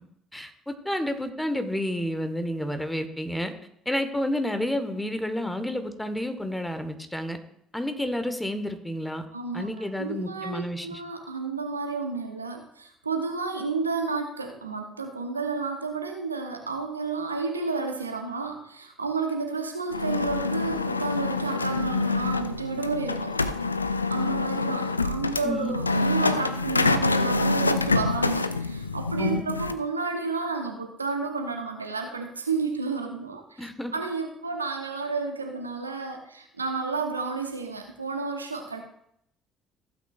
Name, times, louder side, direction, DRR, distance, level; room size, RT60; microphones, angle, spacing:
voice 1, 0.3-3.5 3.8-7.4 7.7-9.2 9.5-11.0 25.4-25.7 29.2-29.4 33.6-33.9, left 1 dB, 5° left, 8 dB, 1.3 m, -30 dB
voice 2, 9.3-23.3 24.1-38.8, right 4 dB, 85° right, 4 dB, 0.9 m, -31 dB
sound 1, 19.9-29.7, left 3 dB, 85° left, 0.3 m, -26 dB
15.5 x 8.6 x 2.4 m, 0.72 s
figure-of-eight pair, 50°, 0 cm